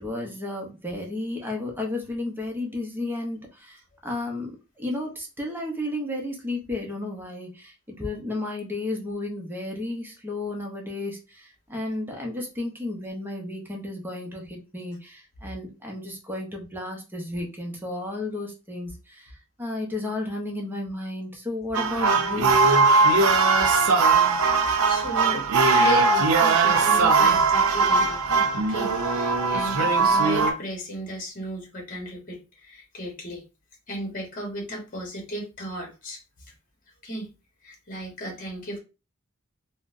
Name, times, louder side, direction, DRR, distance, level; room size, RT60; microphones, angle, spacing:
voice 1, 0.0-22.6, left 2 dB, 10° right, 0 dB, 0.7 m, -33 dB
sound 1, 21.7-30.5, right 4 dB, 90° right, 0.6 m, -20 dB
voice 2, 24.6-25.4 25.7-28.2 28.7-33.4 33.9-36.2 37.0-37.3 37.6-38.8, right 1 dB, 40° left, 0 dB, 1.0 m, -35 dB
3.7 x 2.1 x 2.5 m, 0.30 s
head